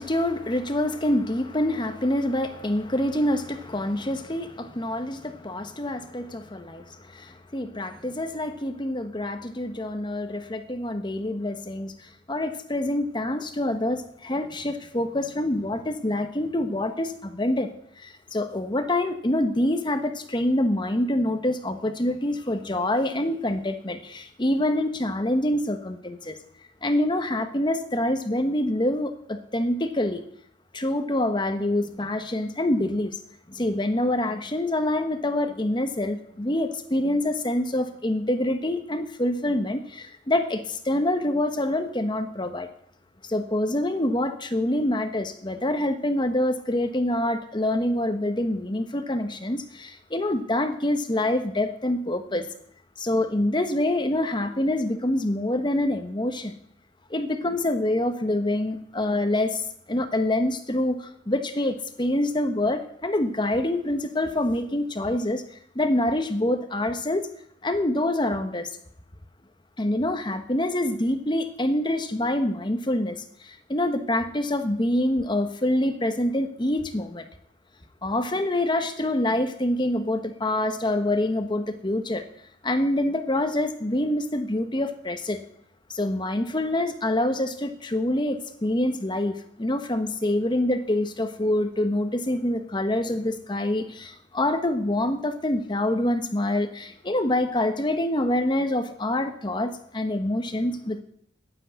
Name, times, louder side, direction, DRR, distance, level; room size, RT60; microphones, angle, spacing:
voice 1, 0.0-11.9 12.3-17.7 18.0-26.4 26.8-30.2 30.7-33.2 33.5-42.7 43.3-52.5 53.0-56.5 57.1-65.4 65.7-67.3 67.6-68.7 69.8-77.2 78.0-82.2 82.6-85.4 85.9-101.0, left 1 dB, 25° left, 8 dB, 1.2 m, -26 dB
10.0 x 9.8 x 8.2 m, 0.67 s
head